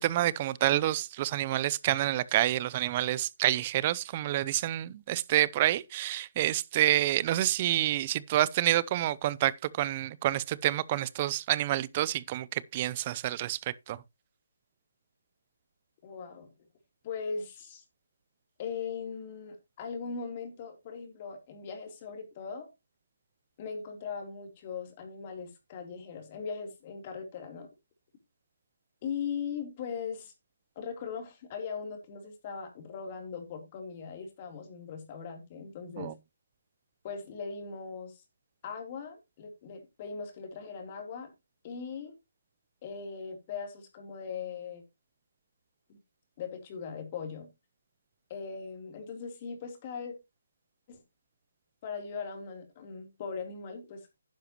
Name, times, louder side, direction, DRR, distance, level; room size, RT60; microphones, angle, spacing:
voice 1, 0.0-13.6 13.9-14.0 36.0-36.1, right 14 dB, 30° right, 0.6 m, -28 dB
voice 2, 16.0-16.5 17.0-17.8 18.6-22.7 23.6-27.7 29.0-30.3 30.7-36.1 37.0-38.2 38.6-41.3 41.6-42.2 42.8-44.8 45.9-46.0 46.4-47.5 48.3-50.1 50.9-51.0 51.8-54.1, left 6 dB, 30° left, 3.3 m, -39 dB
11.0 x 10.5 x 3.0 m
figure-of-eight pair, 155°, 0 cm